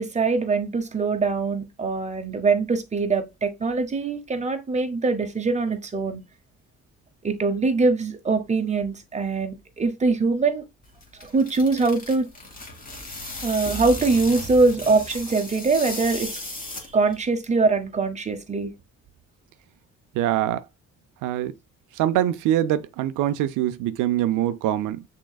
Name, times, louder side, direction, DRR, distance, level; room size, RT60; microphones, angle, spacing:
voice 1, 0.0-6.2 7.2-10.6 11.2-12.3 13.4-18.7, right 3 dB, 25° right, 0.9 m, -23 dB
sound 1, 10.8-17.2, left 2 dB, 30° left, 1.8 m, -36 dB
voice 2, 20.1-20.6 21.2-21.5 21.9-25.0, right 12 dB, 90° right, 0.5 m, -24 dB
6.2 x 3.7 x 2.3 m
cardioid pair, 90°, 30 cm